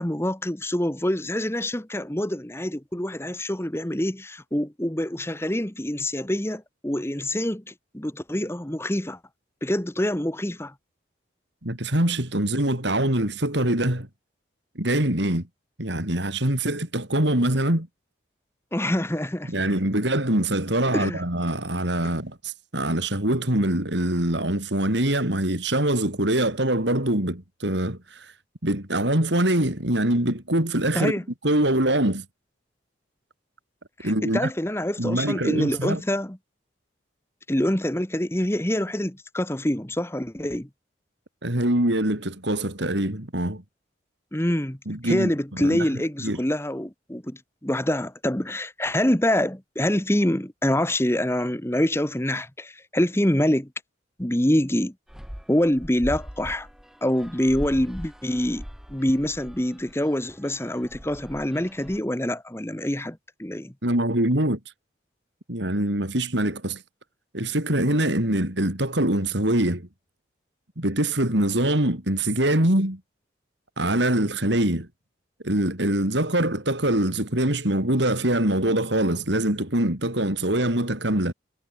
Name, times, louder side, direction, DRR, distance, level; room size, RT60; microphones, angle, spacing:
voice 1, 0.0-9.2 9.6-10.7 18.7-19.5 20.9-21.2 30.9-31.2 34.0-36.4 37.5-40.7 44.3-44.8 45.0-53.7 54.2-54.9 55.5-56.7 57.0-58.6 58.9-63.7, left 1 dB, 15° left, 1.3 m, -25 dB
voice 2, 11.6-14.1 14.8-15.4 15.8-17.9 19.5-28.3 28.6-31.1 31.4-32.2 34.0-34.5 35.0-36.0 41.4-43.6 44.9-45.9 46.2-46.4 63.8-64.6 65.5-66.8 67.3-69.9 70.8-73.0 73.8-74.9 75.4-81.3, right 1 dB, 65° right, 4.1 m, -24 dB
sound 1, 55.1-62.0, equal, ahead, 3.7 m, -41 dB
head